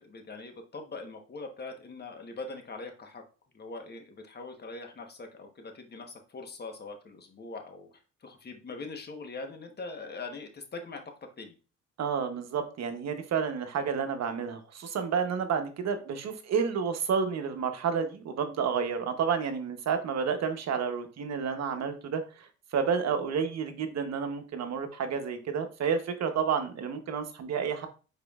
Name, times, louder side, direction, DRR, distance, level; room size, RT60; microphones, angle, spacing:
voice 1, 0.0-3.2 3.5-11.0 11.4-11.6, left 3 dB, 35° left, 4 dB, 1.1 m, -42 dB
voice 2, 12.0-22.5 22.7-27.9, right 6 dB, 60° right, 7 dB, 0.9 m, -30 dB
5.0 x 4.3 x 2.4 m, 0.35 s
cardioid pair, 90°, 30 cm